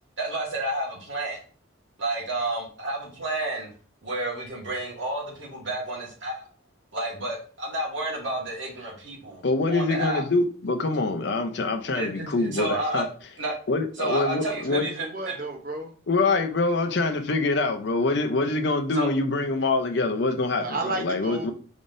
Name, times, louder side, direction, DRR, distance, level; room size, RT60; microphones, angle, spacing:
voice 1, 0.2-1.4 2.0-3.7 4.0-6.5 6.9-9.4 9.7-10.2 11.9-13.1 13.4-13.5 14.0-15.4 18.9-19.1, right 2 dB, 75° right, -2 dB, 1.6 m, -30 dB
voice 2, 9.4-13.0 13.7-14.9 16.1-20.6 21.0-21.5, left 3 dB, 60° left, 5 dB, 0.6 m, -25 dB
voice 3, 14.6-16.0 20.6-21.5, right 2 dB, 45° right, 3 dB, 0.8 m, -33 dB
4.9 x 3.6 x 2.6 m, 0.40 s
head